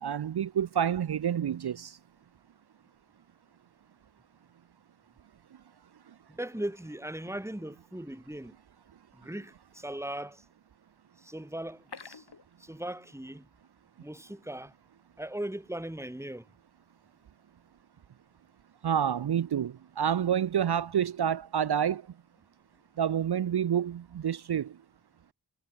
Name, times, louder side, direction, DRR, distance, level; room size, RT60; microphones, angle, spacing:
voice 1, 0.0-2.0 18.8-22.0 23.0-24.8, right 9 dB, 60° right, 0.5 m, -28 dB
voice 2, 6.3-8.5 9.1-10.4 11.2-12.2 12.6-13.5 14.0-14.7 15.2-16.4, right 1 dB, 5° right, 1.6 m, -38 dB
sound 1, 11.7-13.4 13.6-13.7 14.2-14.3, left 5 dB, 65° left, 1.6 m, -49 dB
wide cardioid pair, 50°, 44 cm